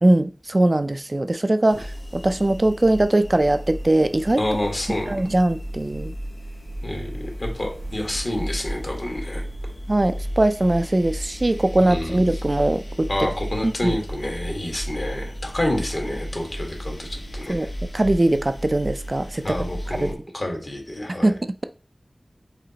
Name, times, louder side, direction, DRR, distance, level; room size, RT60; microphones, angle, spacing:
voice 1, 0.0-4.4 5.1-6.1 9.9-13.3 13.6-14.0 17.5-17.7 17.9-19.6 19.9-20.1 21.1-21.6, right 1 dB, 40° right, 0.3 m, -21 dB
sound 1, 1.7-20.1, equal, 85° left, 1.1 m, -34 dB
voice 2, 4.4-5.2 6.8-9.4 11.8-12.4 13.1-17.7 19.4-21.4, left 1 dB, 50° left, 1.5 m, -28 dB
4.9 x 3.8 x 2.8 m
wide cardioid pair, 70°, 0 cm